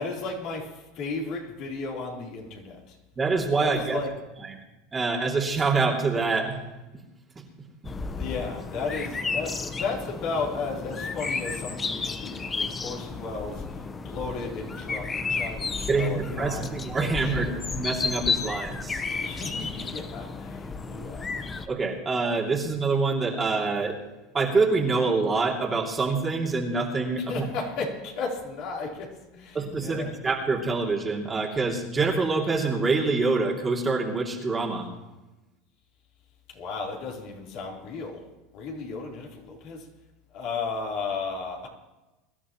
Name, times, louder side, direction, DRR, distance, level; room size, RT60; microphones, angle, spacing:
voice 1, 0.0-3.0 3.5-4.1 8.1-13.7 14.0-17.8 19.2-21.3 27.2-30.1 36.5-38.2 38.5-39.9 40.3-41.7, left 4 dB, 55° left, -1 dB, 3.7 m, -34 dB
voice 2, 3.2-4.0 4.4-4.6 4.9-6.6 15.9-19.0 21.7-24.0 24.3-27.3 29.5-34.9, right 4 dB, 20° right, -1 dB, 2.7 m, -26 dB
sound 1, 7.8-21.7, left 4 dB, 25° left, 1.0 m, -32 dB
23.0 x 12.5 x 3.1 m, 1.1 s
hypercardioid pair, 95°, 0 cm